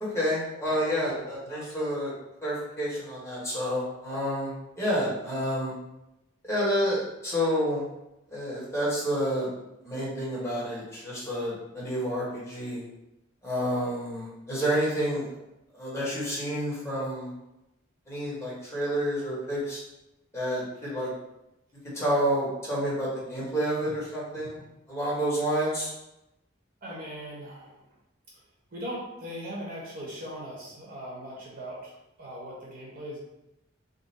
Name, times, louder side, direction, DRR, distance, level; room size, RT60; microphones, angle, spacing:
voice 1, 0.0-2.1 2.4-5.7 6.5-7.8 8.3-9.5 9.8-12.8 13.4-15.3 15.7-17.3 18.1-19.8 20.3-21.1 21.9-24.6 24.9-25.9, equal, 15° left, -7 dB, 1.4 m, -29 dB
voice 2, 26.8-27.8 28.7-33.2, equal, 50° right, -4 dB, 1.1 m, -39 dB
3.9 x 2.2 x 4.2 m, 0.91 s
head